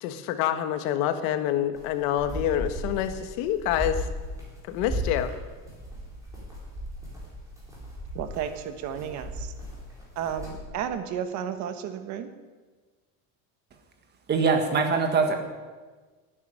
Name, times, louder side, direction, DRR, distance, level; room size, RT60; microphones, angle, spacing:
voice 1, 0.0-4.1 4.7-5.3, left 11 dB, 85° left, 9 dB, 1.5 m, -27 dB
sound 1, 1.7-10.6, equal, 10° right, 4.4 m, -36 dB
voice 2, 8.1-9.5 10.2-12.3, right 8 dB, 45° right, 9 dB, 1.3 m, -33 dB
voice 3, 14.3-15.3, right 4 dB, 25° right, 6 dB, 1.6 m, -22 dB
12.0 x 9.7 x 9.9 m, 1.3 s
cardioid pair, 180°, 40 cm